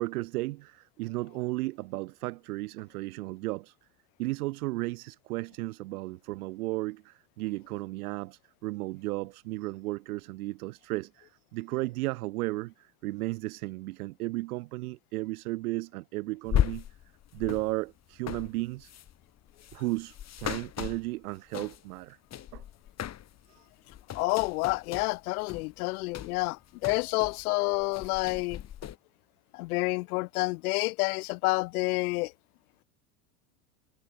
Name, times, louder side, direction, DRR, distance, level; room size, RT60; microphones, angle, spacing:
voice 1, 0.0-3.7 4.2-16.8 17.3-18.9 19.7-22.2 22.5-22.6 23.5-23.7, right 20 dB, 80° right, 0.8 m, -34 dB
sound 1, 16.4-22.0 22.3-23.5 23.8-27.5 27.7-29.0, left 10 dB, 35° left, 1.9 m, -36 dB
voice 2, 24.1-28.6 29.5-32.3, left 24 dB, 80° left, 0.6 m, -29 dB
hypercardioid pair, 95°, 44 cm